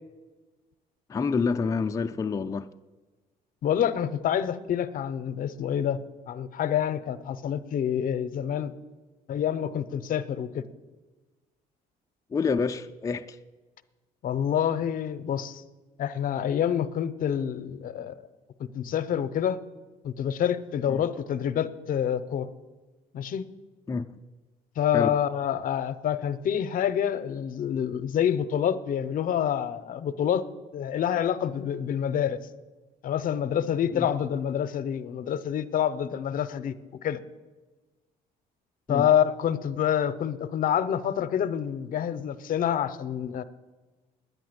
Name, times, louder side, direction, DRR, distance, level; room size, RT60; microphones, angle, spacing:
voice 1, 1.1-2.7 12.3-13.4 20.9-21.0 23.9-24.1 24.9-25.2 33.9-34.1 38.9-39.1, left 5 dB, 20° left, 0.4 m, -28 dB
voice 2, 3.6-6.0 6.3-8.7 9.3-10.6 14.2-15.6 16.0-18.2 18.7-19.6 20.0-22.5 23.1-23.5 24.8-30.5 30.7-32.4 33.0-36.7 37.0-37.2 38.9-43.4, left 9 dB, 55° left, 0.7 m, -27 dB
10.0 x 9.4 x 8.0 m
cardioid pair, 110°, 17 cm